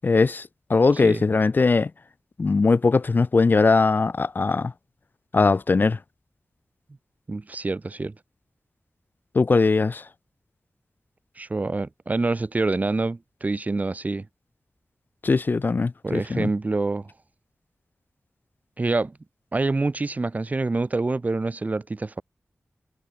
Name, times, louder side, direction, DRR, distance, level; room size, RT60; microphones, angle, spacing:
voice 1, 0.0-1.9 2.4-4.7 5.3-6.0 9.3-10.0 15.2-16.5, left 4 dB, 45° left, 0.6 m, -20 dB
voice 2, 7.3-8.1 11.4-14.3 16.0-17.1 18.8-19.2 19.5-22.2, right 3 dB, 35° right, 1.3 m, -26 dB
wide cardioid pair, 110°, 5 cm